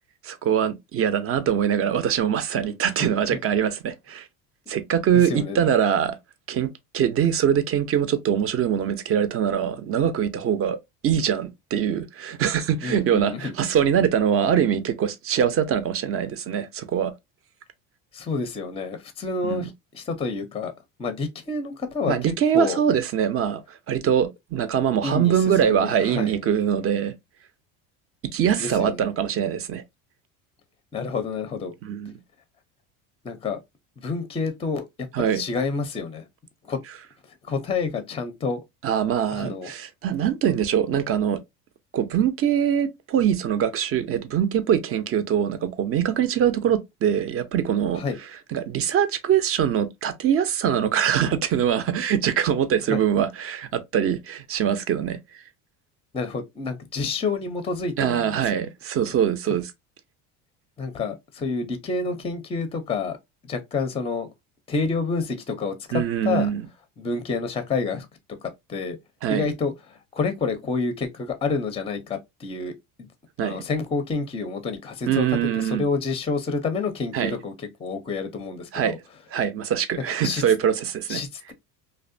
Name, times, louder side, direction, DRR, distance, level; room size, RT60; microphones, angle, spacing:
voice 1, 0.2-4.3 4.7-6.2 6.5-10.8 11.0-17.1 19.4-19.7 22.1-27.1 28.3-29.8 31.8-32.1 35.1-35.4 38.8-41.4 41.9-48.0 48.5-55.2 58.0-59.7 65.9-66.7 69.2-69.5 73.4-73.6 75.1-75.9 77.1-77.3 78.7-78.9 79.3-81.2, right 9 dB, 35° right, 0.5 m, -23 dB
voice 2, 5.1-5.6 12.8-13.5 18.1-20.7 21.0-22.8 25.0-25.3 25.6-26.4 28.6-29.0 30.9-31.7 33.2-33.6 34.0-34.8 35.3-36.3 36.6-36.8 37.4-38.6 39.3-39.7 48.0-48.2 52.9-53.0 56.1-58.6 59.0-59.1 60.8-63.2 63.4-64.3 64.7-66.5 67.0-68.1 68.7-69.0 69.3-72.7 73.4-77.5 77.8-79.0 80.2-80.4 81.1-81.5, left 4 dB, 15° left, 0.5 m, -28 dB
2.6 x 2.1 x 2.5 m
supercardioid pair, 105°, 38 cm